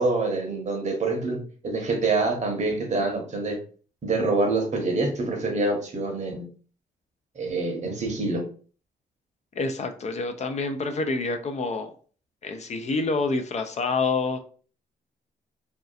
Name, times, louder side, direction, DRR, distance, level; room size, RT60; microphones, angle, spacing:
voice 1, 0.0-3.6 4.0-6.4 7.3-8.4, right 3 dB, 45° right, 2 dB, 0.9 m, -26 dB
voice 2, 9.5-11.9 12.4-14.4, left 3 dB, 45° left, 6 dB, 0.4 m, -27 dB
2.7 x 2.3 x 2.3 m, 0.41 s
supercardioid pair, 60°, 16 cm